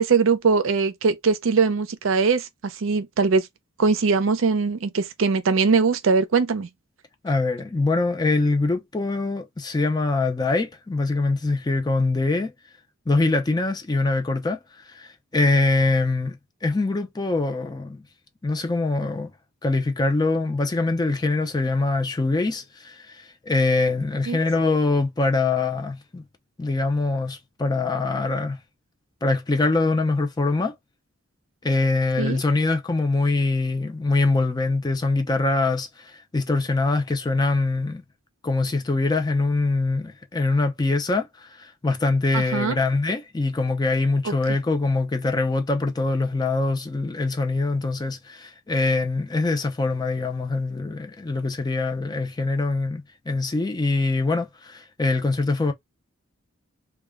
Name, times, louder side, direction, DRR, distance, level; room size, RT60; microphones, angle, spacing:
voice 1, 0.0-3.5 3.8-6.7 24.3-24.4 32.2-32.4 42.3-42.8 44.2-44.3, right 4 dB, 70° right, 0.5 m, -21 dB
voice 2, 7.2-12.5 13.1-14.6 14.8-16.4 16.6-18.0 18.4-19.3 19.6-26.2 26.6-28.6 29.2-30.7 31.6-38.0 38.4-55.7, left 3 dB, 20° left, 0.4 m, -23 dB
2.3 x 2.1 x 3.4 m
head